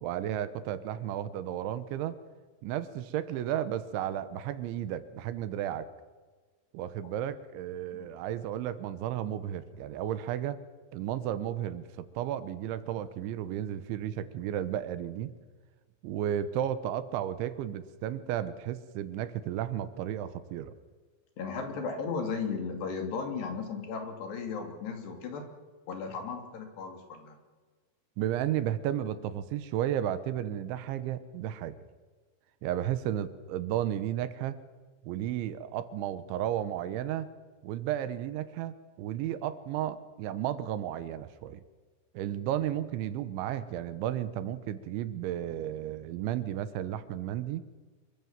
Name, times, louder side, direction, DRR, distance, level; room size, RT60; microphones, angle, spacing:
voice 1, 0.0-2.2 2.6-5.9 6.7-10.6 10.9-15.3 16.0-20.7 28.2-31.8 32.6-34.6 35.0-37.3 37.6-41.6 42.1-47.6, right 11 dB, 80° right, 13 dB, 3.4 m, -33 dB
voice 2, 21.4-25.4 25.9-27.4, left 5 dB, 65° left, 4 dB, 4.8 m, -35 dB
27.0 x 22.5 x 7.4 m, 1.4 s
omnidirectional pair, 5.4 m